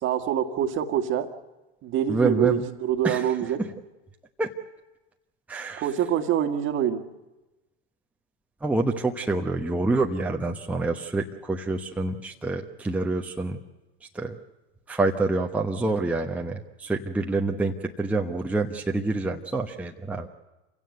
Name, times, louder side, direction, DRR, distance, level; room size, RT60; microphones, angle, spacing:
voice 1, 0.0-1.3 1.8-3.6 5.8-7.0, right 10 dB, 35° right, 7 dB, 1.8 m, -25 dB
voice 2, 2.1-2.6 3.0-3.3 3.6-3.7 4.4-4.5 5.5-5.8 8.6-13.6 14.1-14.4 14.9-20.3, right 3 dB, 5° right, 2 dB, 1.0 m, -27 dB
27.5 x 16.5 x 8.0 m, 1.1 s
hypercardioid pair, 100°, 33 cm